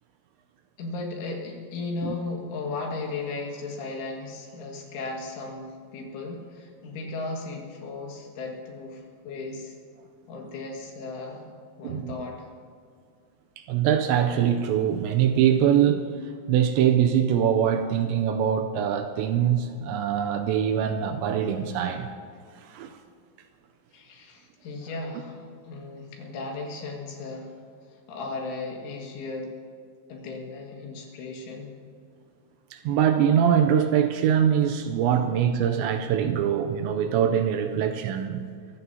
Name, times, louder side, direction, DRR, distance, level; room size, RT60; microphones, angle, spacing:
voice 1, 0.8-9.8 10.3-11.5 11.8-12.5 23.9-27.5 27.9-29.5 30.1-31.7, left 3 dB, 80° left, 0 dB, 4.4 m, -36 dB
voice 2, 11.8-12.1 13.6-16.1 16.5-22.1 22.6-23.0 32.7-38.4, right 9 dB, 85° right, 7 dB, 2.7 m, -23 dB
25.5 x 15.0 x 2.8 m, 2.2 s
omnidirectional pair, 5.5 m